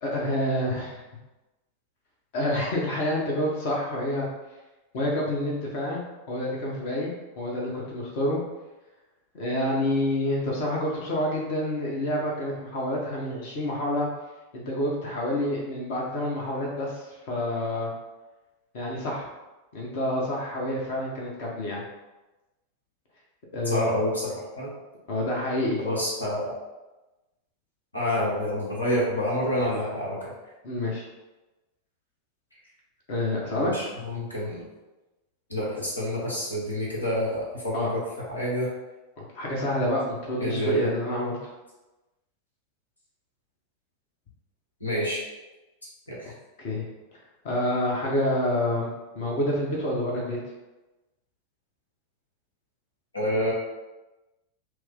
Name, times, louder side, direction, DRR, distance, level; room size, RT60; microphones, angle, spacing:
voice 1, 0.0-1.0 2.3-4.3 4.9-6.0 6.3-7.1 7.4-8.4 9.3-14.1 14.7-17.9 18.7-19.3 19.7-21.8 23.5-23.9 25.1-25.8 30.6-31.0 33.1-33.7 37.7-37.9 39.2-41.5 46.2-46.3 46.6-46.9 47.4-48.9 49.1-50.4, left 1 dB, 50° left, -2 dB, 1.0 m, -28 dB
voice 2, 23.6-24.7 25.8-26.5 27.9-30.3 33.6-34.7 35.5-38.7 40.4-40.9 44.8-45.2 46.1-46.3 53.1-53.5, equal, 80° left, -4 dB, 1.1 m, -28 dB
6.0 x 2.1 x 3.6 m, 1.1 s
figure-of-eight pair, 90°, 0 cm